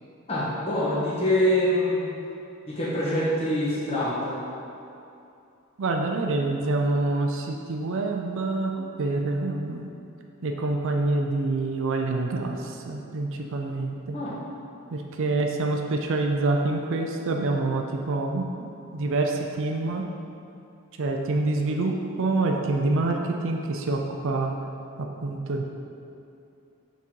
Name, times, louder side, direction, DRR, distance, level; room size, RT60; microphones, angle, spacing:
voice 1, 0.3-2.1 2.7-4.4 14.1-14.3, left 1 dB, 25° left, -8 dB, 1.4 m, -25 dB
voice 2, 5.8-9.9 10.4-14.2 14.9-20.0 21.0-24.6 25.0-25.6, right 2 dB, 60° right, 2 dB, 0.5 m, -26 dB
5.9 x 4.1 x 4.6 m, 2.7 s
head